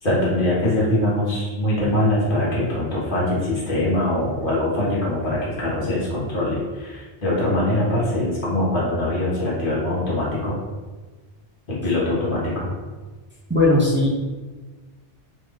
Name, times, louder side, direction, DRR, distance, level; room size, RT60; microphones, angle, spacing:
voice 1, 0.0-10.6 11.7-12.7, left 1 dB, 50° left, -8 dB, 1.4 m, -23 dB
voice 2, 13.5-14.1, left 2 dB, 15° right, -5 dB, 0.4 m, -17 dB
3.3 x 2.5 x 3.6 m, 1.3 s
omnidirectional pair, 1.1 m